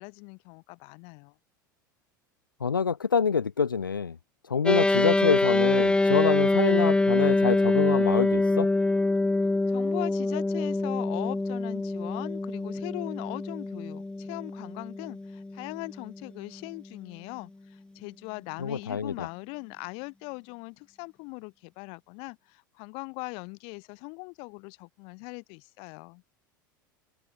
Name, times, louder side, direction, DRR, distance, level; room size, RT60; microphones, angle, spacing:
voice 1, 0.0-1.3 9.7-26.2, left 33 dB, 55° left, 4.5 m, -40 dB
voice 2, 2.6-4.2 4.4-8.7 18.6-19.3, left 6 dB, 90° left, 0.6 m, -26 dB
sound 1, 4.7-16.2, left 2 dB, 10° left, 1.1 m, -25 dB
figure-of-eight pair, 80°, 11 cm